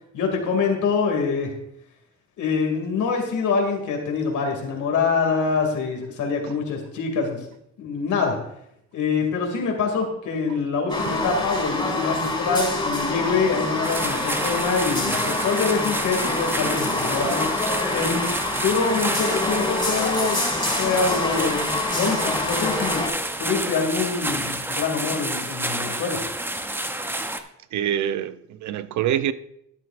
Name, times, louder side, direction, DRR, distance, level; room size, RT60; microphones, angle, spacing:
voice 1, 0.1-1.5 2.4-7.5 7.8-8.4 8.9-17.5 17.9-20.4 20.8-23.0 23.4-26.2, left 4 dB, 75° left, 2.3 m, -25 dB
sound 1, 10.9-23.1, left 2 dB, 15° left, 2.4 m, -26 dB
sound 2, 13.8-27.4, right 1 dB, 5° right, 0.7 m, -29 dB
voice 2, 27.7-29.3, right 10 dB, 70° right, 0.6 m, -26 dB
12.5 x 9.5 x 2.5 m
cardioid pair, 90°, 30 cm